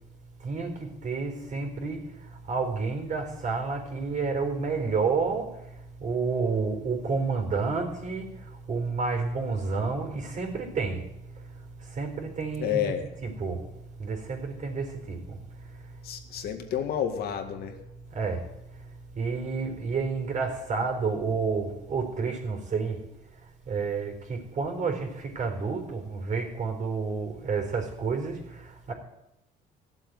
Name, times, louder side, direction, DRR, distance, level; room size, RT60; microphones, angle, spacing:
voice 1, 0.4-2.1 2.5-5.6 6.0-11.0 11.3-11.4 11.8-12.9 13.2-13.6 14.0-15.4 18.1-18.4 19.1-23.0 23.7-28.9, right 4 dB, 45° right, 4 dB, 4.3 m, -30 dB
voice 2, 12.6-13.1 16.0-17.8, left 9 dB, 65° left, 6 dB, 1.9 m, -30 dB
15.0 x 7.9 x 9.3 m, 0.84 s
cardioid pair, 110°, 17 cm